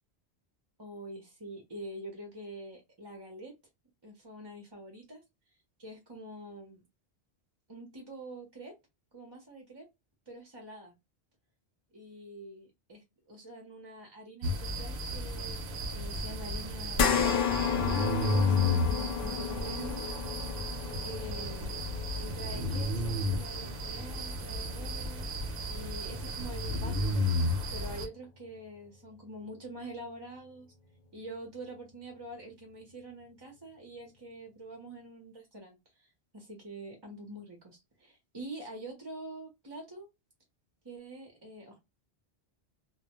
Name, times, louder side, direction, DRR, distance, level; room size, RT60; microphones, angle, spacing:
voice 1, 0.8-3.5 4.0-5.2 5.8-6.8 7.7-8.7 9.1-9.9 10.3-10.9 11.9-20.0 21.0-21.8 22.2-25.3 25.7-27.3 27.7-30.7 31.1-40.1 40.8-41.8, right 1 dB, 30° right, 0.6 m, -46 dB
sound 1, 14.4-28.1, left 1 dB, 65° right, 0.7 m, -33 dB
sound 2, 17.0-25.6 26.0-26.1 27.6-27.7, left 7 dB, 60° left, 0.7 m, -33 dB
2.2 x 2.0 x 2.9 m
omnidirectional pair, 1.1 m